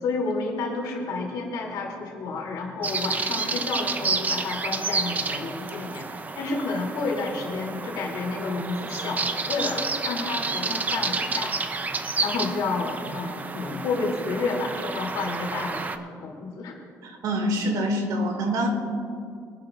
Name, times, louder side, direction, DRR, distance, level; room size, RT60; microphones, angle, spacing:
voice 1, 0.0-6.1 6.4-11.6 12.2-16.8, left 3 dB, 85° left, -2 dB, 3.1 m, -30 dB
sound 1, 2.8-16.0, right 4 dB, 25° right, 0.7 m, -30 dB
voice 2, 17.0-18.7, right 1 dB, 75° right, 2 dB, 2.4 m, -26 dB
23.5 x 11.5 x 2.6 m, 2.4 s
cardioid pair, 130°, 7 cm